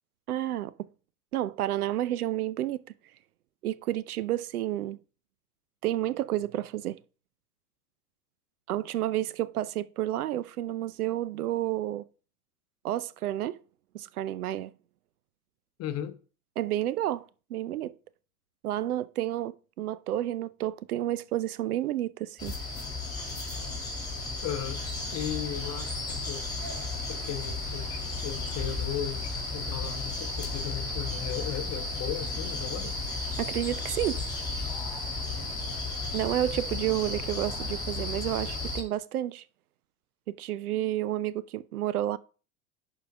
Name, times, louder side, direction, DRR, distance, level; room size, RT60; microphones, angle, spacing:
voice 1, 0.3-0.9 1.3-2.8 3.6-5.0 5.8-7.0 8.7-12.0 12.8-13.6 13.9-14.7 16.6-17.2 17.5-17.9 18.6-22.6 33.4-34.2 36.1-39.4 40.3-42.2, right 13 dB, 80° right, 0.6 m, -30 dB
voice 2, 15.8-16.2 24.4-24.8 25.1-25.9 26.3-26.5 27.1-33.0, left 10 dB, 35° left, 0.9 m, -36 dB
sound 1, 22.4-38.8, left 3 dB, 10° left, 2.4 m, -34 dB
11.0 x 4.0 x 3.5 m
hypercardioid pair, 90°, 44 cm